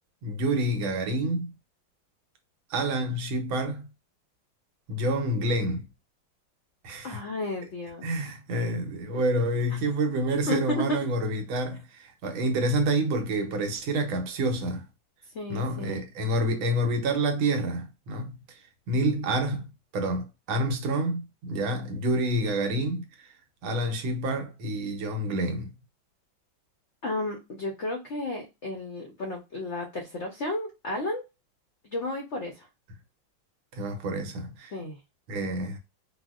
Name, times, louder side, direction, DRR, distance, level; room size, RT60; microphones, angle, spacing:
voice 1, 0.2-1.5 2.7-3.8 4.9-5.8 6.8-7.2 8.0-14.8 15.5-18.4 18.9-19.7 19.9-23.1 23.6-25.7 33.7-34.8 35.3-35.8, right 1 dB, 90° right, 1.6 m, -28 dB
voice 2, 7.0-8.1 10.5-10.8 15.3-16.0 27.0-31.2 31.9-32.6 34.7-35.0, left 2 dB, 80° left, 0.6 m, -33 dB
4.3 x 2.0 x 2.4 m
omnidirectional pair, 2.2 m